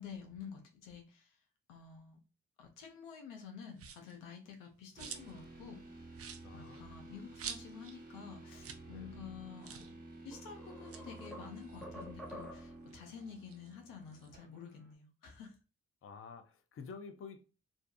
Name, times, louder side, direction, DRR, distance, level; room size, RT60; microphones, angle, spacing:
voice 1, 0.0-1.4 1.7-2.2 2.6-5.8 6.5-15.6, left 7 dB, 85° left, 0.6 m, -50 dB
sound 1, 3.7-4.2 4.6-5.4 5.7-5.8 6.1-8.0 8.3-8.4 8.6-8.9 9.1-9.2 9.6-9.9 10.7-12.4 12.8-14.3, right 7 dB, 45° right, 0.5 m, -49 dB
sound 2, 5.0-14.9, right 2 dB, 30° right, 1.1 m, -52 dB
voice 2, 6.3-7.2 8.9-9.2 16.0-17.4, left 5 dB, 45° left, 0.5 m, -51 dB
sound 3, 9.7-9.8 10.3-12.9, equal, ahead, 0.7 m, -50 dB
2.5 x 2.3 x 2.4 m
hypercardioid pair, 45°, 32 cm